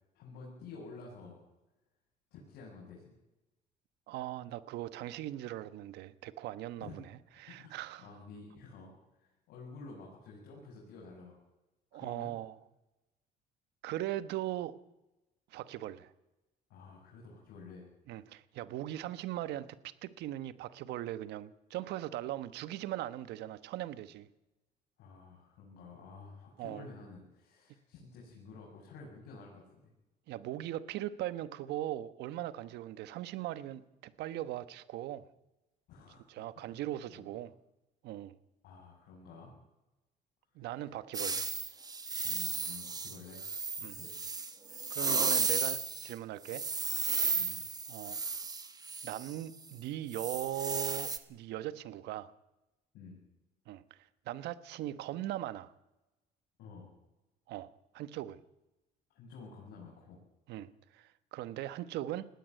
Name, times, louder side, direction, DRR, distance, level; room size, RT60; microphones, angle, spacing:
voice 1, 0.1-1.4 2.3-3.2 6.8-7.1 7.5-8.9 9.2-11.4 11.9-12.3 16.7-17.9 25.0-29.9 35.9-36.8 37.1-37.2 38.6-39.5 40.6-40.7 42.2-43.4 43.8-44.1 47.4-47.6 52.9-53.2 56.6-56.9 59.1-60.2, left 4 dB, 80° left, -3 dB, 7.1 m, -51 dB
voice 2, 4.1-7.0 7.4-8.1 11.9-12.5 13.8-14.8 15.5-16.1 18.1-24.3 26.6-26.9 30.3-35.2 36.3-37.5 38.0-38.3 40.5-41.5 43.8-44.0 44.9-46.6 47.9-48.2 49.0-52.3 53.7-54.0 54.3-55.7 57.5-58.4 60.5-62.3, right 13 dB, 85° right, 14 dB, 1.2 m, -39 dB
sound 1, 41.1-46.1 46.5-49.3 50.1-51.2, right 4 dB, 20° right, 1.5 m, -34 dB
20.0 x 16.5 x 9.2 m, 0.99 s
cardioid pair, 110°, 17 cm